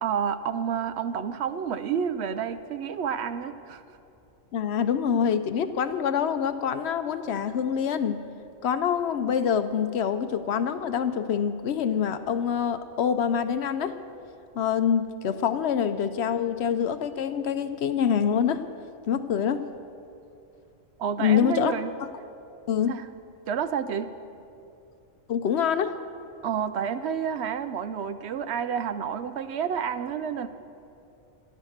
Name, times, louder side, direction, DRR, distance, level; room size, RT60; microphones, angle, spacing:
voice 1, 0.0-3.8 21.0-21.9 22.9-23.1 23.5-24.1 26.4-30.5, right 7 dB, 65° right, 11 dB, 0.8 m, -29 dB
voice 2, 4.5-8.2 8.6-14.0 14.5-18.6 19.1-19.7 21.2-21.8 22.7-23.0 25.3-26.0, left 8 dB, 65° left, 11 dB, 0.8 m, -25 dB
14.0 x 11.0 x 6.5 m, 2.6 s
omnidirectional pair, 1.3 m